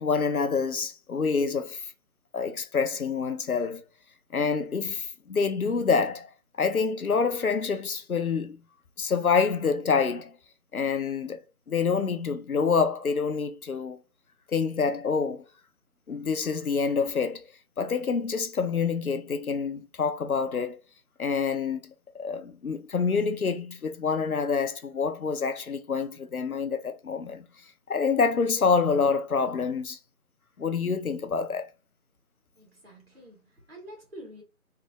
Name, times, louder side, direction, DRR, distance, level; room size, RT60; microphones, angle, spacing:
voice 1, 0.0-1.9 2.3-3.8 4.3-6.3 6.6-8.6 9.0-10.3 10.7-11.4 11.7-14.0 14.5-15.4 16.1-17.4 17.8-20.8 21.2-21.8 22.1-27.4 27.9-30.0 30.6-31.7, left 5 dB, 70° left, 0.7 m, -27 dB
voice 2, 32.6-34.4, right 1 dB, 40° right, 1.8 m, -47 dB
3.3 x 2.4 x 3.0 m
figure-of-eight pair, 175°, 44 cm